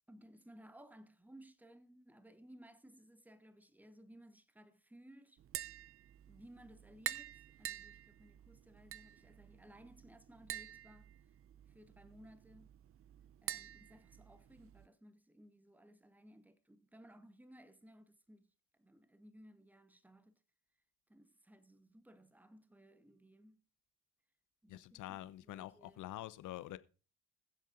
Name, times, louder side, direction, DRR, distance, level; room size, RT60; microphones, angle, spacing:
voice 1, 0.1-5.4 6.3-11.1 11.7-12.8 13.4-20.4 21.1-23.6 24.6-26.2, right 1 dB, 5° right, 1.1 m, -60 dB
Tap, 5.4-14.9, right 11 dB, 40° right, 0.5 m, -48 dB
voice 2, 24.7-26.8, left 14 dB, 60° left, 0.7 m, -46 dB
20.5 x 7.5 x 2.6 m
hypercardioid pair, 50°, 36 cm